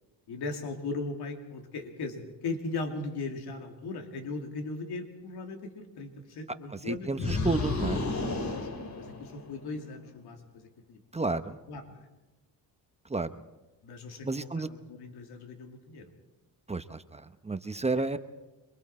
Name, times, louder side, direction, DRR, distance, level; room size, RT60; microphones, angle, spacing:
voice 1, 0.3-7.9 8.4-11.0 11.3-11.4 11.7-12.1 13.8-16.1, left 3 dB, 75° left, 4 dB, 2.8 m, -38 dB
voice 2, 6.8-8.0 11.1-11.6 13.1-13.3 14.2-14.7 16.7-18.2, right 3 dB, 15° right, 10 dB, 0.9 m, -31 dB
sound 1, 7.2-9.7, left 3 dB, 45° left, 3.0 m, -32 dB
27.0 x 22.5 x 4.4 m, 1.1 s
cardioid pair, 95°, 40 cm